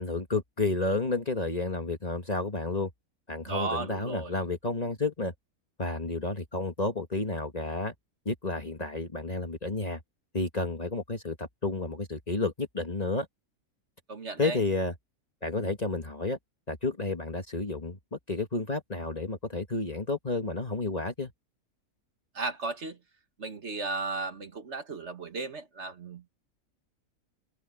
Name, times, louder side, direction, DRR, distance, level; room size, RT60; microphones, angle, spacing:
voice 1, 0.0-2.9 3.3-5.3 5.8-7.9 8.2-10.0 10.3-13.3 14.4-14.9 15.4-16.4 16.7-21.3, left 2 dB, 25° left, 1.6 m, -31 dB
voice 2, 3.5-4.3 14.1-14.6 22.4-23.0 23.4-26.3, right 3 dB, 50° right, 1.7 m, -35 dB
open air
omnidirectional pair, 1.6 m